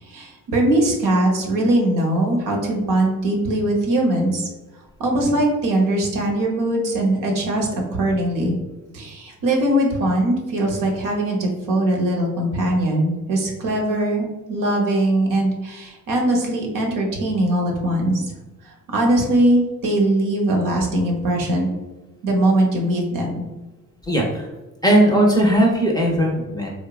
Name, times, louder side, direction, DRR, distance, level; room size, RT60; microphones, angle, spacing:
voice 1, 0.0-4.5 5.0-8.5 8.9-18.2 18.9-21.7 22.2-23.4, right 1 dB, 65° right, 0 dB, 0.8 m, -21 dB
voice 2, 24.0-24.5 24.8-26.7, right 1 dB, 10° left, -1 dB, 0.6 m, -18 dB
2.9 x 2.2 x 2.3 m, 1.1 s
supercardioid pair, 70°, 35 cm